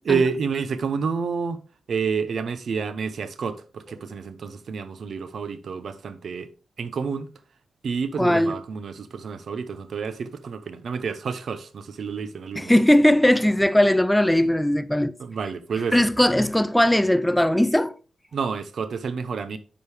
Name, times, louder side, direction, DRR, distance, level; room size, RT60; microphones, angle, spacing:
voice 1, 0.0-1.6 1.9-6.5 6.8-7.3 7.8-12.8 15.2-16.1 18.3-19.6, right 5 dB, 65° right, 0.8 m, -29 dB
voice 2, 8.2-8.5 12.6-15.1 15.9-18.0, left 1 dB, 5° left, 0.3 m, -19 dB
9.2 x 5.1 x 3.4 m
cardioid pair, 100°, 0 cm